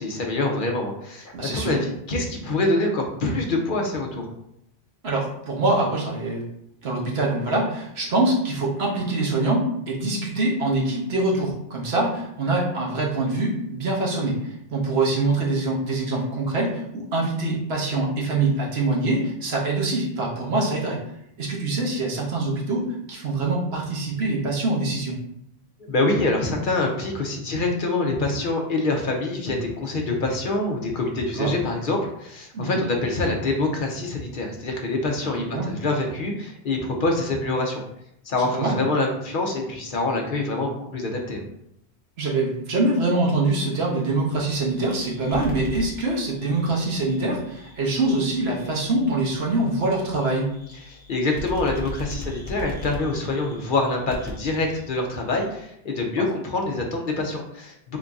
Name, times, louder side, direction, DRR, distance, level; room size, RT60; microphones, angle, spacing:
voice 1, 0.0-4.3 25.9-37.8 38.2-41.4 50.9-58.0, left 2 dB, 55° left, 2 dB, 0.7 m, -25 dB
voice 2, 1.3-1.8 5.0-6.4 6.8-21.0 21.4-25.2 31.3-31.5 32.5-32.7 35.3-35.7 38.5-38.8 42.2-50.5 56.2-56.3, right 2 dB, 75° right, -2 dB, 1.2 m, -24 dB
sound 1, 44.3-55.6, left 1 dB, 10° left, 0.6 m, -40 dB
3.7 x 2.6 x 3.5 m, 0.75 s
omnidirectional pair, 1.1 m